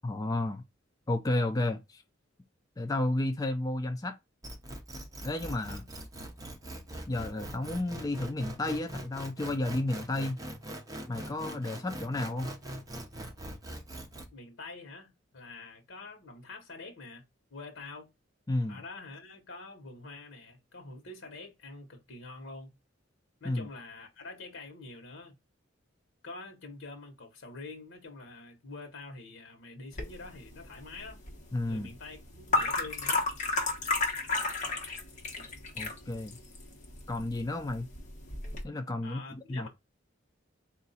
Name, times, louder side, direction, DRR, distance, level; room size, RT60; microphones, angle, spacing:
voice 1, 0.0-0.6 1.1-2.0 2.8-4.2 5.2-5.8 7.1-10.4 11.1-12.5 18.5-18.8 23.4-23.7 31.5-31.9 35.8-36.4 37.1-37.9 38.6-39.7, left 2 dB, 20° left, 0.4 m, -32 dB
sound 1, 4.4-14.3, right 1 dB, 20° right, 0.8 m, -42 dB
voice 2, 14.3-17.2 17.5-18.1 18.7-22.7 23.4-25.3 26.2-31.2 31.6-33.3 39.0-39.7, left 3 dB, 80° left, 1.1 m, -46 dB
sound 2, 29.9-38.6, left 3 dB, 40° left, 1.2 m, -33 dB
3.8 x 2.5 x 4.1 m
head